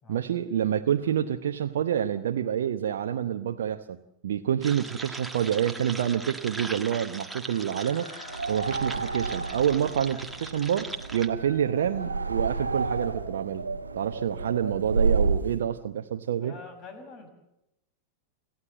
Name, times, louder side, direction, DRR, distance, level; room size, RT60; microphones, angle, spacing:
voice 1, 0.1-4.0 4.2-8.1 8.5-16.5, right 9 dB, 60° right, 5 dB, 0.9 m, -27 dB
sound 1, 4.6-11.3, right 2 dB, 5° right, 1.5 m, -40 dB
Chicken rooster, 7.4-13.4, left 3 dB, 70° left, 4.5 m, -50 dB
sound 2, 8.3-15.6, right 4 dB, 75° right, 1.3 m, -30 dB
voice 2, 16.4-17.3, left 4 dB, 35° left, 8 dB, 6.0 m, -45 dB
27.5 x 14.5 x 7.6 m, 0.86 s
figure-of-eight pair, 90°, 0 cm